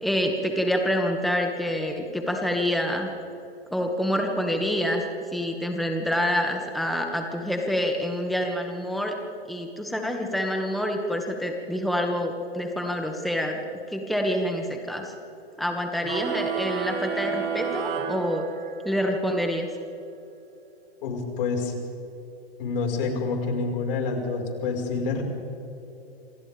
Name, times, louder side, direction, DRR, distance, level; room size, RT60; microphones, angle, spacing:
voice 1, 0.0-3.1 3.7-5.1 5.3-9.1 9.5-13.6 13.9-15.1 15.6-18.4 18.8-19.7, equal, ahead, 2 dB, 2.0 m, -27 dB
sound 1, 16.0-19.0, right 8 dB, 35° right, 2.4 m, -31 dB
voice 2, 21.0-21.7 22.6-25.2, left 4 dB, 65° left, 1 dB, 5.3 m, -27 dB
28.0 x 26.0 x 3.6 m, 3.0 s
hypercardioid pair, 110°, 30 cm